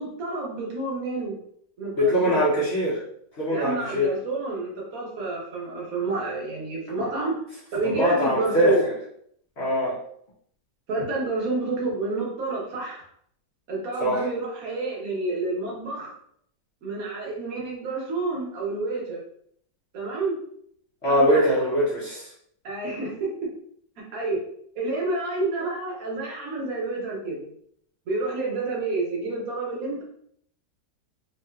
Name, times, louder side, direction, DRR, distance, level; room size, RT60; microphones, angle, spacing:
voice 1, 0.0-1.4 1.8-2.5 3.5-7.3 7.7-8.8 10.9-13.0 13.7-16.2 16.8-19.2 19.9-20.4 21.1-21.7 22.6-23.3 24.0-24.4 24.7-27.4 28.1-30.0, right 3 dB, 60° right, -2 dB, 1.1 m, -29 dB
voice 2, 2.0-3.0 3.4-4.1 7.8-8.8 9.6-10.0 14.0-14.3 21.0-22.3, equal, 60° left, -7 dB, 0.6 m, -22 dB
3.0 x 2.7 x 2.3 m, 0.67 s
omnidirectional pair, 1.9 m